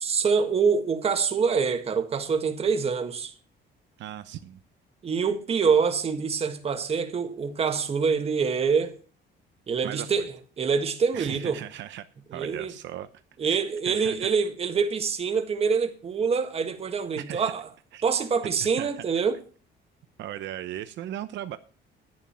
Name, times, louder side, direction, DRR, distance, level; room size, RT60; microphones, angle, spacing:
voice 1, 0.0-3.3 5.0-8.9 9.7-11.6 12.3-12.7 13.4-17.7 18.0-19.4, right 5 dB, 30° right, 1.5 m, -25 dB
voice 2, 4.0-4.6 9.8-10.3 11.1-12.1 12.3-13.1 13.4-14.3 17.2-17.5 17.9-18.0 18.8-19.0 20.2-21.6, right 12 dB, 70° right, 0.8 m, -37 dB
11.0 x 10.5 x 4.3 m
cardioid pair, 160°, 19 cm